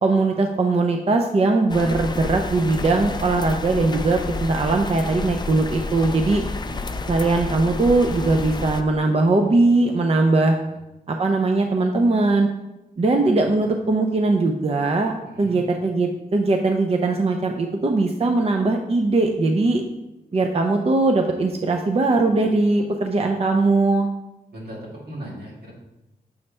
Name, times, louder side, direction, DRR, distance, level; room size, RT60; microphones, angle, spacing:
voice 1, 0.0-6.4 7.1-10.6 11.1-12.5 13.0-19.8 20.3-24.1, right 3 dB, 40° right, 3 dB, 0.6 m, -20 dB
sound 1, 1.7-8.8, left 3 dB, 25° left, 0.4 m, -30 dB
voice 2, 10.3-10.8 13.4-13.5 15.2-15.6 24.5-25.7, right 1 dB, 80° right, -5 dB, 2.5 m, -39 dB
7.1 x 3.2 x 5.4 m, 0.99 s
cardioid pair, 80°, 16 cm